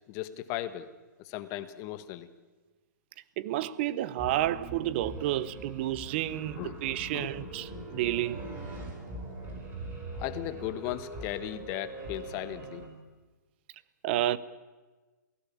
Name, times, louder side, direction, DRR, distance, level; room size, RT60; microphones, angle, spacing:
voice 1, 0.1-0.9 1.2-2.3 6.6-6.8 7.1-7.3 10.2-12.9, left 13 dB, 25° left, 1.3 m, -36 dB
voice 2, 3.4-8.5 14.0-14.4, right 13 dB, 35° right, 0.9 m, -30 dB
sound 1, 4.2-12.9, right 2 dB, 20° right, 4.6 m, -42 dB
27.5 x 17.0 x 8.6 m
hypercardioid pair, 160°, 10 cm